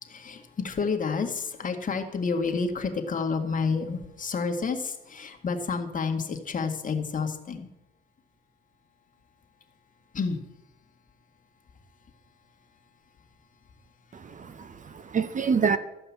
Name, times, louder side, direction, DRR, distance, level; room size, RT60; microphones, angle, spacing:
voice 1, 0.0-7.7 10.1-10.4, left 5 dB, 40° left, 1.8 m, -29 dB
voice 2, 14.1-15.8, right 6 dB, 40° right, 0.8 m, -27 dB
14.0 x 5.4 x 8.5 m
cardioid pair, 90°, 20 cm